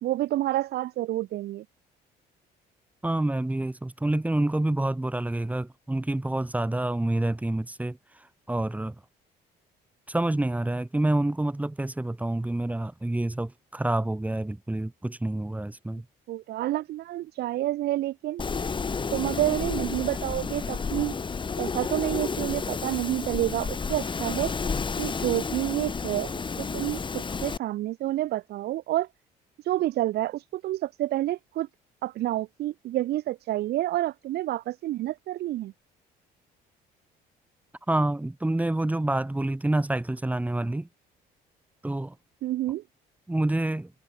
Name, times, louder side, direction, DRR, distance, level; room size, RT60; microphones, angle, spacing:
voice 1, 0.0-1.6 16.3-18.4 19.1-21.2 21.6-24.5 25.0-26.3 26.6-29.1 29.6-31.7 32.0-35.7 42.4-42.8, right 15 dB, 70° right, 2.3 m, -29 dB
voice 2, 3.0-8.0 8.5-8.9 10.1-16.0 37.9-40.9 41.8-42.1 43.3-43.9, right 1 dB, 10° right, 4.3 m, -27 dB
Wind, 18.4-27.6, left 5 dB, 30° left, 7.4 m, -31 dB
cardioid pair, 110°, 17 cm